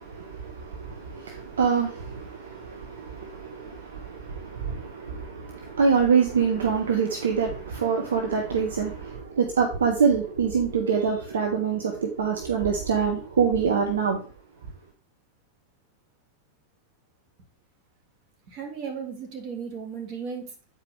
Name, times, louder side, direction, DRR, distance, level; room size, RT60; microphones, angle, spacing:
voice 1, 0.1-14.2, right 6 dB, 65° right, 0.9 m, -25 dB
voice 2, 18.5-20.5, right 6 dB, 40° right, 2.1 m, -35 dB
8.2 x 4.9 x 3.5 m
figure-of-eight pair, 90°, 0 cm